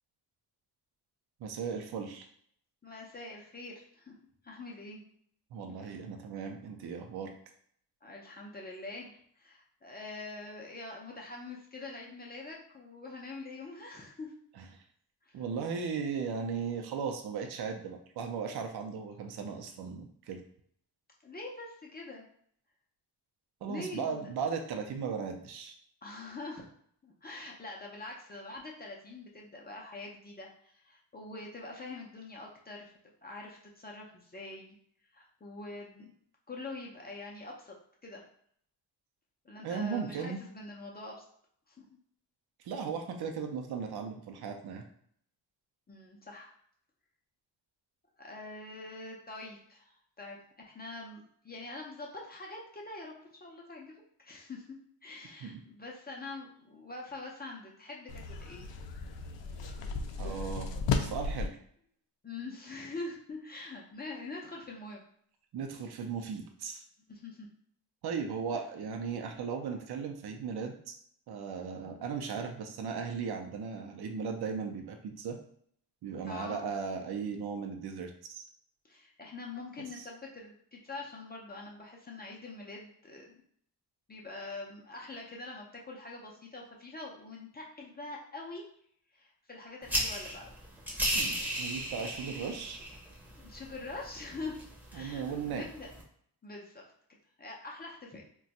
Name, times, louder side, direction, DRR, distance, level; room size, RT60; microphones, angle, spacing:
voice 1, 1.4-2.3 5.5-7.3 14.6-14.8 15.3-20.4 23.6-25.7 39.6-40.4 42.6-44.9 55.4-55.6 60.2-60.7 61.0-61.6 65.5-66.8 68.0-70.9 71.3-75.4 76.0-78.5 79.9-80.0 91.1-92.8 94.9-95.7, right 6 dB, 65° right, 4 dB, 0.6 m, -37 dB
voice 2, 2.8-4.1 4.4-5.0 5.6-6.0 8.0-14.3 15.2-15.4 21.2-22.3 23.6-24.3 26.0-26.7 27.0-34.8 35.1-36.1 36.5-37.7 38.0-38.2 39.4-41.2 41.7-41.9 45.9-46.5 48.2-50.4 50.7-54.8 55.0-58.7 59.6-59.9 60.3-60.5 62.2-65.1 65.7-65.9 67.1-67.5 76.3-76.6 78.8-83.3 84.1-88.6 89.1-90.6 93.4-94.6 94.9-95.9 96.4-96.8 97.4-98.2, left 3 dB, 25° left, -2 dB, 0.5 m, -44 dB
sound 1, 58.1-61.5, left 4 dB, 90° left, 0.5 m, -34 dB
sound 2, 89.8-96.0, equal, 5° right, 0.7 m, -36 dB
2.5 x 2.3 x 4.0 m, 0.64 s
wide cardioid pair, 140°, 42 cm